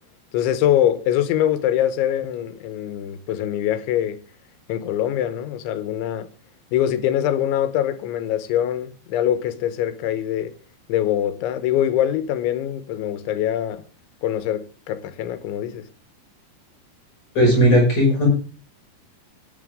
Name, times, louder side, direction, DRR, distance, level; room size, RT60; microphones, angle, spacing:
voice 1, 0.3-4.2 4.7-6.3 6.7-10.5 10.9-13.8 14.2-15.9, left 11 dB, 90° left, 3.5 m, -23 dB
voice 2, 17.3-18.3, equal, 35° left, 6.5 m, -16 dB
19.0 x 9.3 x 3.6 m
omnidirectional pair, 5.2 m